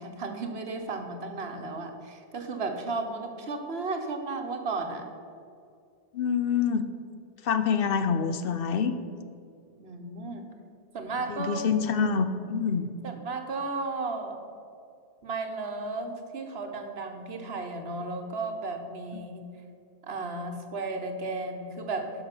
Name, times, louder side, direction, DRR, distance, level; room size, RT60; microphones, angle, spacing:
voice 1, 0.0-5.1 9.8-10.5 10.9-11.6 13.0-14.4 15.2-19.5 20.0-22.1, right 3 dB, 70° right, 5 dB, 1.3 m, -34 dB
voice 2, 6.1-6.9 7.4-9.0 11.3-12.9, left 6 dB, 65° left, 10 dB, 0.8 m, -26 dB
11.0 x 6.2 x 6.0 m, 2.4 s
omnidirectional pair, 1.1 m